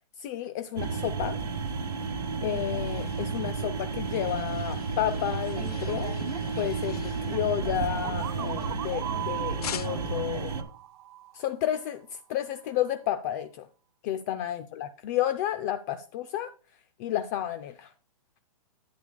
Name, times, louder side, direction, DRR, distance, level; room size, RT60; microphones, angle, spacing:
voice 1, 0.2-1.4 2.4-6.2 6.6-10.6 11.3-13.7 14.0-16.5 17.0-17.9, left 11 dB, 30° left, 0.4 m, -31 dB
sound 1, 0.8-10.6, right 4 dB, 85° right, 1.4 m, -32 dB
sound 2, 2.0-9.2 9.6-10.3, left 9 dB, 80° left, 0.6 m, -46 dB
sound 3, 8.0-11.8, right 14 dB, 50° right, 0.5 m, -39 dB
11.0 x 8.6 x 2.2 m
hypercardioid pair, 145°, 19 cm